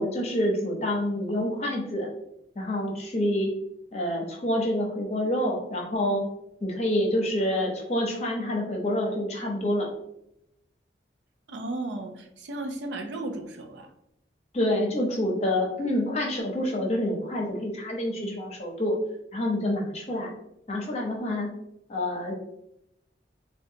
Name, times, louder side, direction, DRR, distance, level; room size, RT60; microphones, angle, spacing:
voice 1, 0.0-2.1 2.5-3.5 3.9-6.2 6.6-9.9 14.5-19.0 19.3-20.3 20.7-21.5 21.9-22.3, left 1 dB, 35° left, -1 dB, 0.7 m, -27 dB
voice 2, 11.5-13.9 21.2-21.4, right 2 dB, 75° right, 5 dB, 0.5 m, -35 dB
3.9 x 2.3 x 2.6 m, 0.81 s
head